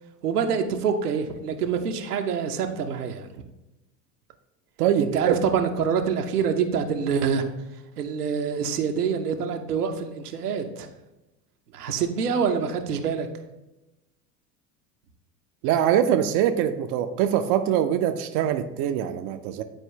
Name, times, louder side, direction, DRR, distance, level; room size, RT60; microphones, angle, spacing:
voice 1, 0.2-3.3 5.0-7.5 8.0-10.9 11.7-13.3, right 6 dB, 80° right, 3 dB, 1.0 m, -26 dB
voice 2, 4.8-5.4 15.6-19.6, right 10 dB, 45° right, 7 dB, 0.6 m, -23 dB
10.5 x 4.5 x 3.2 m, 0.99 s
figure-of-eight pair, 75°, 46 cm